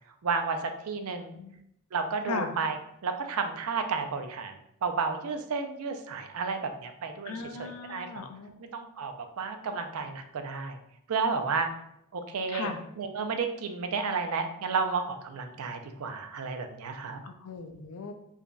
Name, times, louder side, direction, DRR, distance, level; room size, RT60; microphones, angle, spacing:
voice 1, 0.2-1.3 1.9-2.8 3.0-7.3 7.6-8.2 8.7-10.8 11.1-11.7 12.1-12.7 13.0-17.2, right 5 dB, 75° right, 6 dB, 0.4 m, -32 dB
voice 2, 7.3-8.6 12.5-12.8 17.2-18.1, left 4 dB, 80° left, 6 dB, 0.5 m, -37 dB
4.7 x 2.6 x 2.2 m, 0.79 s
head